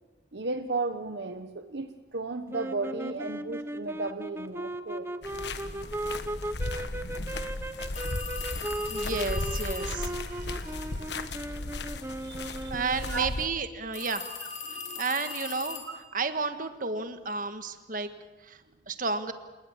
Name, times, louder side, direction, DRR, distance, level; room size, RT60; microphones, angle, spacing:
voice 1, 0.3-5.1 10.9-11.1 12.2-12.8 13.1-13.3 14.7-15.0, right 3 dB, 70° right, 8 dB, 1.0 m, -34 dB
sound 1, 2.5-13.2, right 1 dB, 15° right, 0.7 m, -37 dB
sound 2, 5.2-13.5, left 2 dB, 70° left, 1.3 m, -36 dB
sound 3, 7.9-10.0 13.9-16.1, left 5 dB, 40° left, 3.3 m, -39 dB
voice 2, 8.9-11.0 12.7-14.2 15.0-15.8 16.1-18.1 18.5-18.6 18.9-19.3, right 4 dB, 50° right, 9 dB, 1.5 m, -32 dB
28.5 x 19.5 x 7.3 m, 1.2 s
head